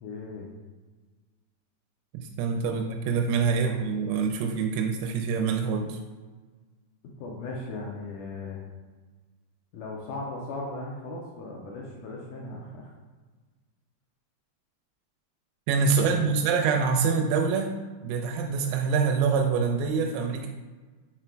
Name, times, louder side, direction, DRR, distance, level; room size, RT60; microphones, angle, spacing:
voice 1, 0.0-0.5 2.7-2.8 3.6-3.8 7.2-8.6 9.7-12.9 16.0-16.4, left 2 dB, 85° left, -3 dB, 1.8 m, -37 dB
voice 2, 2.1-6.0 15.7-17.7 18.0-20.5, right 5 dB, 90° right, 3 dB, 2.6 m, -25 dB
5.8 x 3.7 x 4.4 m, 1.3 s
omnidirectional pair, 4.5 m